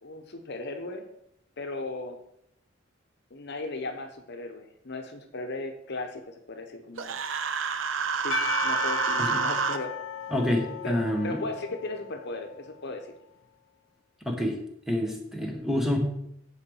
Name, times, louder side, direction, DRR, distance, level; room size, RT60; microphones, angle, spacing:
voice 1, 0.0-1.1 1.6-2.2 3.3-7.1 8.2-9.9 10.8-13.1, left 2 dB, 60° left, 6 dB, 1.0 m, -37 dB
Human voice, 7.0-9.8, right 6 dB, 85° right, 0.7 m, -28 dB
Percussion / Church bell, 8.3-12.7, left 7 dB, 80° left, 0.7 m, -36 dB
voice 2, 10.3-11.4 14.2-14.6 14.9-16.0, left 1 dB, ahead, 2 dB, 1.4 m, -27 dB
7.1 x 4.9 x 7.1 m, 0.75 s
head